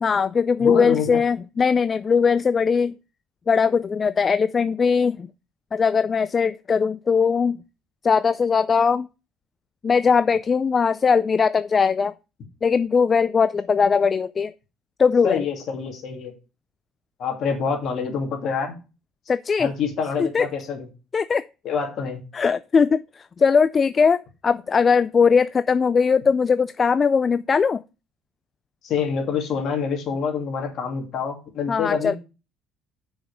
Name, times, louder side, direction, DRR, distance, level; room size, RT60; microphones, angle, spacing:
voice 1, 0.0-2.9 3.5-5.3 5.7-7.6 8.0-9.1 9.8-12.1 12.6-14.5 15.0-15.4 19.3-19.7 20.2-20.5 21.1-21.4 22.3-27.8 31.7-32.2, left 5 dB, 35° left, 0.3 m, -20 dB
voice 2, 0.6-1.2 15.2-16.3 17.2-18.7 19.6-20.9 21.6-22.2 28.8-32.2, left 6 dB, 55° left, 2.5 m, -26 dB
6.2 x 5.3 x 6.2 m
supercardioid pair, 75°, 0 cm